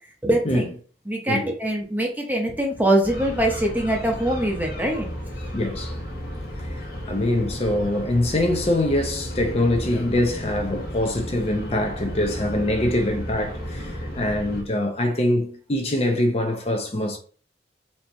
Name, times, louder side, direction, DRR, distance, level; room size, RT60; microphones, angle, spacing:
voice 1, 0.2-0.7 1.1-5.1, right 1 dB, 10° right, 0.8 m, -23 dB
sound 1, 3.0-14.6, equal, 55° left, 1.2 m, -33 dB
voice 2, 5.5-5.9 6.6-6.7 7.0-17.2, left 1 dB, 35° left, 0.7 m, -24 dB
4.3 x 2.9 x 3.3 m
head